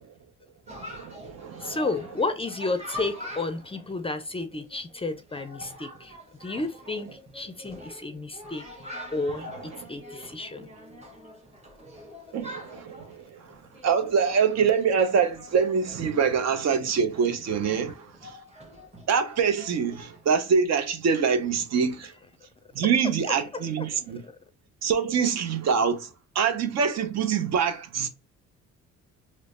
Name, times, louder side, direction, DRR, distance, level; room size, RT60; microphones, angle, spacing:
Chatter, 0.7-20.3, left 1 dB, 20° right, 1.1 m, -45 dB
voice 1, 0.7-1.8 9.7-9.9 12.3-13.4 13.8-18.3 19.1-22.1 22.7-24.2 24.8-26.1 26.3-28.1, right 6 dB, 60° right, 0.6 m, -25 dB
voice 2, 1.6-6.1 6.4-8.6 9.1-10.7 23.5-23.6 23.9-24.3, left 3 dB, 20° left, 0.4 m, -32 dB
3.0 x 2.0 x 4.1 m
cardioid pair, 90°, 30 cm